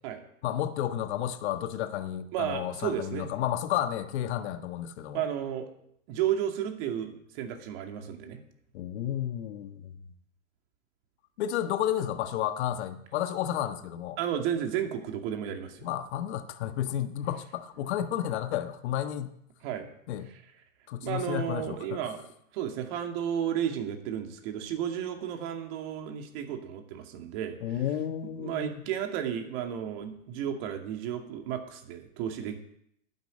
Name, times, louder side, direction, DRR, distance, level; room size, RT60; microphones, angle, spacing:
voice 1, 0.4-5.2 8.7-9.9 11.4-14.2 15.8-19.3 20.1-20.3 20.9-21.8 27.6-28.8, left 11 dB, 55° left, 9 dB, 1.5 m, -32 dB
voice 2, 2.3-3.3 5.1-5.7 6.1-8.4 14.2-15.9 19.6-19.9 21.0-22.3 22.5-27.8 28.4-32.6, right 9 dB, 45° right, 4 dB, 2.5 m, -33 dB
11.5 x 9.3 x 8.9 m, 0.74 s
hypercardioid pair, 115°, 40 cm